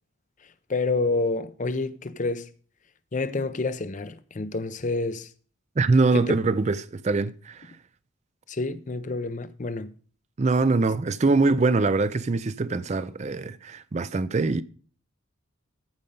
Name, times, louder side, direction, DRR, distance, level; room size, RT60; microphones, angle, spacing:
voice 1, 0.7-2.5 3.1-5.3 6.1-6.4 8.5-9.9, left 3 dB, 35° left, 0.5 m, -28 dB
voice 2, 5.8-7.7 10.4-14.6, right 3 dB, 35° right, 0.4 m, -23 dB
14.0 x 5.2 x 5.3 m
head